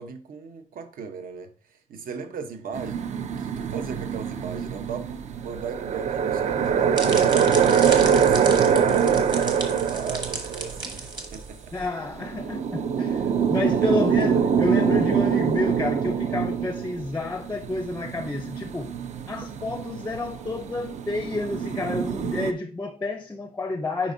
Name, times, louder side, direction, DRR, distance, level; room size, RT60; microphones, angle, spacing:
voice 1, 0.0-7.7 8.1-11.7 13.8-14.1 14.4-14.5, right 6 dB, 70° right, 0.9 m, -37 dB
sound 1, 2.7-11.1 11.9-12.0 12.2-22.5, right 7 dB, 50° right, 0.5 m, -24 dB
sound 2, 6.5-11.8, right 3 dB, 30° right, 1.2 m, -34 dB
voice 2, 11.7-19.0 19.3-24.1, left 2 dB, 15° left, 0.5 m, -30 dB
8.7 x 5.2 x 2.6 m
wide cardioid pair, 175°, 15 cm